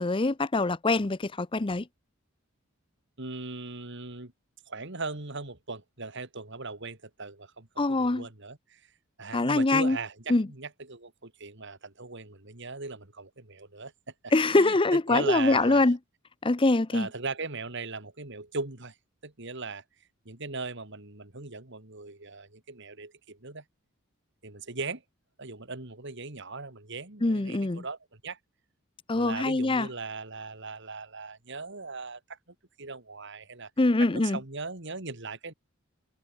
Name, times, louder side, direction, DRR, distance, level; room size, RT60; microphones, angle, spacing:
voice 1, 0.0-1.8 7.8-8.3 9.3-10.0 10.3-10.5 14.3-16.0 16.4-17.1 27.2-27.8 29.1-29.9 33.8-34.4, left 2 dB, 25° left, 0.6 m, -24 dB
voice 2, 3.2-4.3 4.7-8.8 9.2-13.9 14.2-15.8 16.9-18.9 19.2-19.8 20.2-23.6 24.4-25.0 25.4-28.4 29.1-32.2 32.8-33.7 34.1-35.5, right 3 dB, 60° right, 2.8 m, -38 dB
head